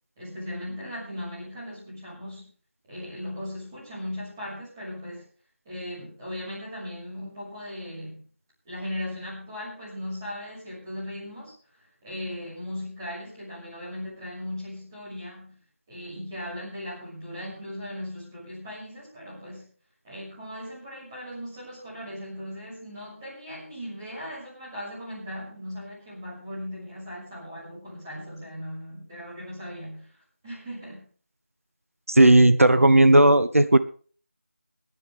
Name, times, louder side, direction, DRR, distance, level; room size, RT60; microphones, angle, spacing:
voice 1, 0.2-2.5 2.9-5.2 5.6-8.2 8.6-11.5 12.0-15.6 15.9-19.7 20.0-30.1 30.4-31.1, left 1 dB, 15° right, -7 dB, 6.4 m, -38 dB
voice 2, 32.1-33.8, right 1 dB, 80° right, 12 dB, 1.2 m, -15 dB
21.5 x 10.5 x 3.6 m, 0.40 s
figure-of-eight pair, 170°, 7 cm